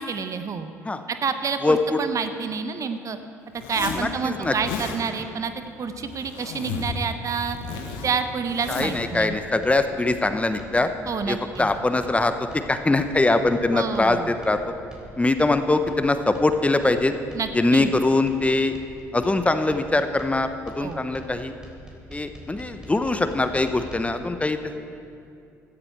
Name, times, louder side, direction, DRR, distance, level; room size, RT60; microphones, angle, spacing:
voice 1, 0.0-0.7 1.1-3.2 3.7-5.5 5.8-7.6 8.0-9.3 11.1-11.7 13.7-14.4 17.3-17.9 20.8-21.0, right 5 dB, 40° right, 9 dB, 0.9 m, -28 dB
voice 2, 1.6-2.0 4.0-4.5 8.7-10.9 11.3-14.6 15.2-17.1 17.5-18.8 19.1-20.5 20.7-21.5 22.1-24.8, left 2 dB, 15° left, 9 dB, 0.9 m, -22 dB
Zipper (clothing), 3.6-4.1 4.4-5.0 5.9-7.0 7.3-9.0, left 5 dB, 70° left, 1.4 m, -33 dB
sound 1, 8.7-24.0, right 1 dB, 10° right, 3.5 m, -44 dB
16.0 x 12.5 x 4.6 m, 2.5 s
hypercardioid pair, 55°, 8 cm